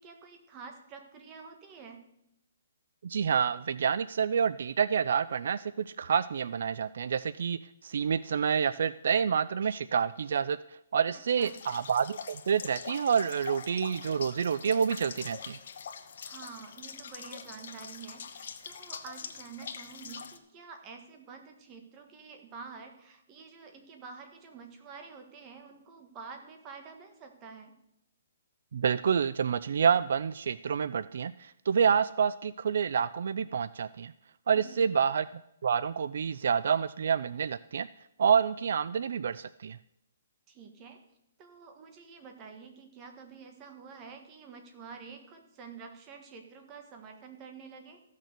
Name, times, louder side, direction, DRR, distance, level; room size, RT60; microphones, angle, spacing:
voice 1, 0.0-2.0 11.4-11.6 16.2-27.7 34.5-34.9 40.5-41.0 41.4-48.0, right 5 dB, 20° right, 5 dB, 1.5 m, -48 dB
voice 2, 3.0-10.6 10.9-15.6 28.7-34.1 34.5-35.3 35.6-37.9 38.2-39.8, right 7 dB, 65° right, 16 dB, 0.3 m, -28 dB
sound 1, 11.4-20.4, left 6 dB, 60° left, 1.1 m, -44 dB
14.5 x 6.5 x 6.7 m, 0.84 s
hypercardioid pair, 165°, 0 cm